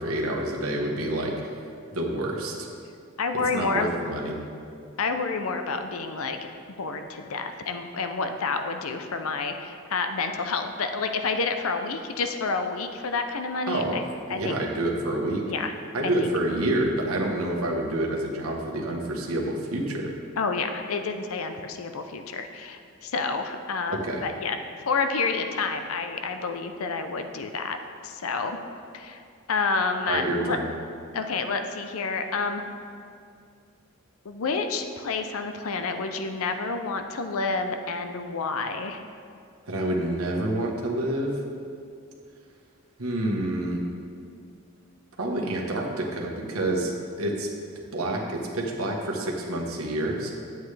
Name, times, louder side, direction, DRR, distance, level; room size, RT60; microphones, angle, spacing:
voice 1, 0.0-1.3 1.9-2.7 3.5-4.4 13.7-14.0 14.3-15.4 15.9-20.1 23.9-24.2 30.1-30.7 39.7-41.4 43.0-43.8 45.2-46.9 47.2-47.5 47.9-50.3, right 1 dB, 80° right, 0 dB, 1.2 m, -28 dB
voice 2, 3.2-3.9 5.0-6.4 6.8-14.0 14.3-14.6 15.5-15.7 16.2-16.3 20.4-24.6 24.9-27.8 28.0-28.6 28.9-29.2 29.5-30.6 31.1-32.6 34.2-39.0, left 4 dB, 80° left, 7 dB, 0.6 m, -29 dB
9.4 x 8.0 x 3.3 m, 2.4 s
head